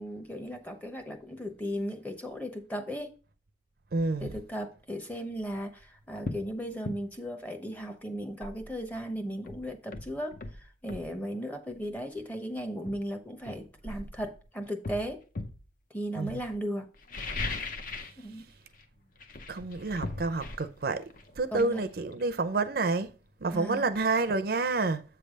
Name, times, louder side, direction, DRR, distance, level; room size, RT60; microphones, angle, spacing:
voice 1, 0.0-3.1 4.2-15.2 15.9-16.9 18.2-18.4 21.5-21.8 23.5-23.8, equal, 10° left, 0.8 m, -36 dB
voice 2, 3.9-4.3 16.2-16.4 19.5-21.0 21.4-23.1 23.4-25.0, right 3 dB, 55° right, 0.5 m, -29 dB
sound 1, 5.4-5.6 6.2-6.5 6.8-7.0 8.9-9.0 9.5-11.1 12.2-12.3 12.8-14.2 14.8-15.6 16.9-18.2 18.5-18.8 19.1-22.7 23.0-23.1, left 3 dB, 45° left, 0.7 m, -39 dB
7.9 x 3.3 x 6.4 m
head